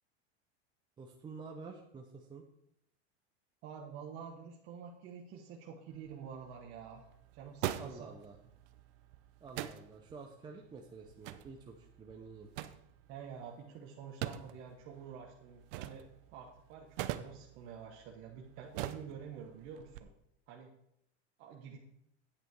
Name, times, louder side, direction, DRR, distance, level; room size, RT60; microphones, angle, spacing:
voice 1, 1.0-2.4 7.8-8.4 9.4-12.5, right 4 dB, 15° right, 1 dB, 0.6 m, -49 dB
voice 2, 3.6-7.1 7.3-8.1 13.1-20.1 20.5-20.7 21.4-21.8, right 7 dB, 40° right, 0 dB, 1.1 m, -48 dB
sound 1, 5.9-20.0, right 13 dB, 55° right, 0.7 m, -45 dB
8.9 x 8.1 x 4.6 m, 0.76 s
supercardioid pair, 150°, 33 cm